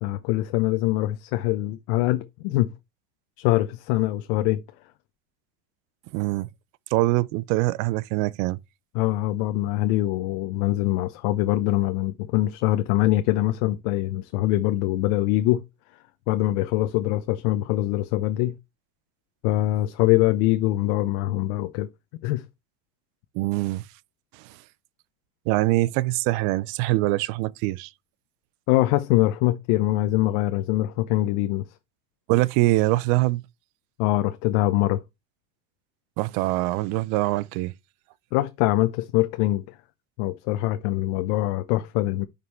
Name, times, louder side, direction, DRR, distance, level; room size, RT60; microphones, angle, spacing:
voice 1, 0.0-2.7 3.4-4.6 8.9-15.6 16.3-18.6 19.4-21.9 22.2-22.4 28.7-31.6 34.0-35.0 38.3-39.8 40.2-42.3, left 16 dB, 80° left, 0.8 m, -23 dB
voice 2, 6.1-6.5 6.9-8.6 23.3-23.8 24.3-24.5 25.5-27.9 32.3-33.4 36.2-37.7, right 18 dB, 70° right, 0.6 m, -23 dB
9.6 x 5.3 x 3.1 m
cardioid pair, 165°, 31 cm